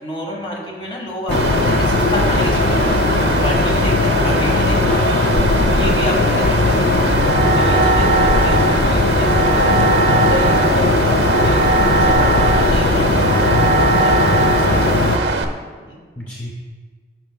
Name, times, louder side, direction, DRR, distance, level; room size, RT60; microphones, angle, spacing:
voice 1, 0.0-5.0 5.6-11.6 12.0-15.1 15.9-16.0, equal, 30° left, -1 dB, 1.4 m, -30 dB
sound 1, 1.3-15.2, left 3 dB, 55° left, 0.4 m, -18 dB
Mechanical fan, 1.3-15.4, right 3 dB, 80° right, 0.7 m, -22 dB
voice 2, 4.5-5.5 8.1-8.4 16.2-16.5, equal, 10° left, -2 dB, 0.6 m, -32 dB
sound 2, 7.1-15.3, right 3 dB, 45° right, 0.4 m, -20 dB
12.5 x 5.8 x 2.2 m, 1.5 s
head